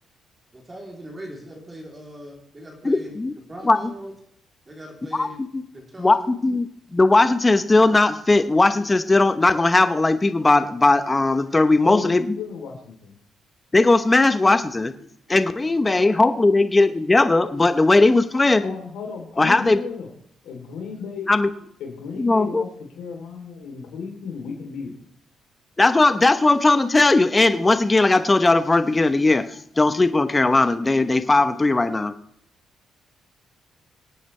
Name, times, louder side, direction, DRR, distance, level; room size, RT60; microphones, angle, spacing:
voice 1, 0.5-3.1 3.5-4.1 4.7-5.4 5.7-6.3, right 1 dB, 25° right, -1 dB, 3.3 m, -40 dB
voice 2, 2.8-3.3 3.6-3.9 5.1-5.3 5.5-5.6 6.0-12.4 13.7-14.9 15.3-18.7 19.4-19.8 21.3-21.5 22.2-22.6 25.8-32.1, left 2 dB, 20° left, 10 dB, 0.9 m, -18 dB
voice 3, 11.8-13.1 15.5-15.6 18.6-20.1 20.4-21.3 21.8-22.7 22.9-25.0, left 5 dB, 85° left, 1 dB, 3.2 m, -34 dB
25.5 x 8.8 x 3.2 m, 0.66 s
cardioid pair, 90°, 0 cm